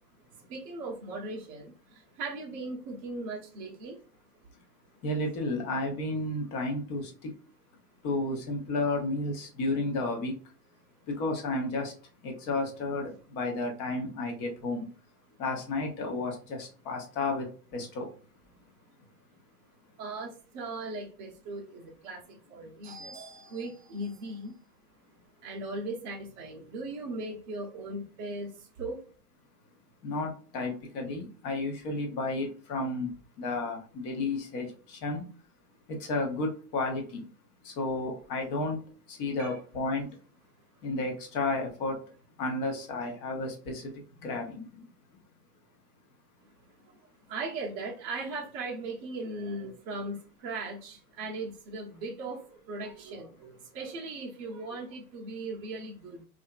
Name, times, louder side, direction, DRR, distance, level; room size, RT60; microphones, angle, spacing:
voice 1, 0.5-4.0 20.0-24.6 25.4-29.0 39.4-39.5 46.8-47.0 47.3-56.2, right 2 dB, 30° right, -3 dB, 0.7 m, -38 dB
voice 2, 5.0-7.4 8.0-10.4 11.1-11.9 12.2-14.9 15.4-18.1 30.0-35.3 35.9-37.3 37.6-40.2 40.8-42.0 42.4-44.8, left 2 dB, 25° left, 2 dB, 0.6 m, -32 dB
2.7 x 2.5 x 2.2 m, 0.38 s
hypercardioid pair, 125°, 47 cm